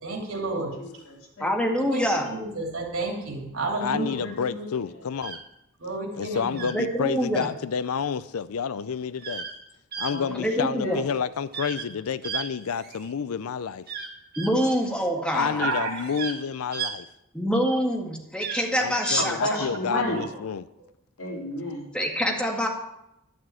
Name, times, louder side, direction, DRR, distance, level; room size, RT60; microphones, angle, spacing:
voice 1, 0.0-0.8 1.9-4.2 5.8-6.7 15.1-16.1 19.9-20.3, right 2 dB, 70° right, 3.2 m, -31 dB
voice 2, 0.8-1.8 4.0-5.0 10.1-11.0 19.1-20.2 21.2-21.9, left 1 dB, 65° left, 3.7 m, -33 dB
voice 3, 1.4-2.3 6.7-7.5 10.3-11.0 14.4-15.7 17.3-19.7 21.9-22.7, equal, 5° left, 1.9 m, -25 dB
voice 4, 3.8-5.4 6.2-9.4 10.0-13.9 15.3-17.1 18.8-20.6, left 6 dB, 85° left, 0.5 m, -29 dB
sound 1, 5.2-5.4 6.5-6.8 9.2-9.5 9.9-10.1 11.5-11.9 12.2-13.1 13.9-14.5 15.9-16.4 16.7-16.9 18.4-18.6 19.0-19.2, right 6 dB, 45° right, 1.6 m, -34 dB
12.0 x 6.3 x 9.0 m
head